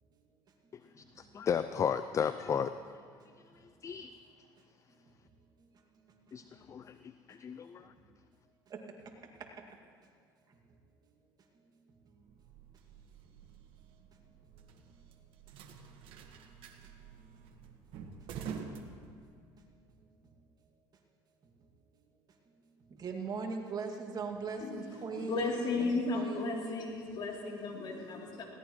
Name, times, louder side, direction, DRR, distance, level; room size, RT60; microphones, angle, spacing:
voice 1, 1.0-2.7 3.8-4.1 6.3-7.0 7.3-7.9, left 7 dB, 30° left, 12 dB, 0.4 m, -34 dB
voice 2, 5.9-6.5 8.7-9.6 10.5-10.6 11.5-11.7 12.1-12.2 16.8-17.3 19.6-19.7 20.2-20.3 22.5-22.6 22.9-26.8, right 4 dB, 40° right, 1 dB, 2.2 m, -42 dB
sound 1, 12.3-19.6, right 6 dB, 65° right, 1.6 m, -48 dB
voice 3, 25.2-28.4, left 3 dB, 50° left, -1 dB, 3.1 m, -34 dB
20.5 x 17.0 x 3.1 m, 2.1 s
supercardioid pair, 95°, 10 cm